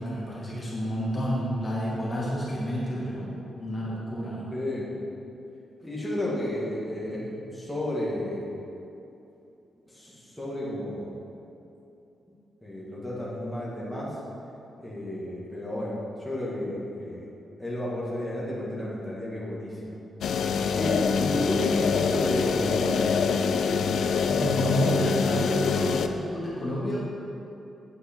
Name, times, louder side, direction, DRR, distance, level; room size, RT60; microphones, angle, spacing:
voice 1, 0.0-4.5 21.2-21.3 24.3-27.2, equal, 20° left, -6 dB, 1.5 m, -30 dB
voice 2, 4.5-4.9 5.8-8.4 9.9-11.2 12.6-14.2 14.8-17.3 17.6-20.0 20.7-23.0, left 1 dB, ahead, -7 dB, 1.7 m, -32 dB
sound 1, 20.2-26.1, left 5 dB, 70° left, 0.4 m, -25 dB
8.8 x 7.7 x 4.4 m, 2.8 s
wide cardioid pair, 175°, 0 cm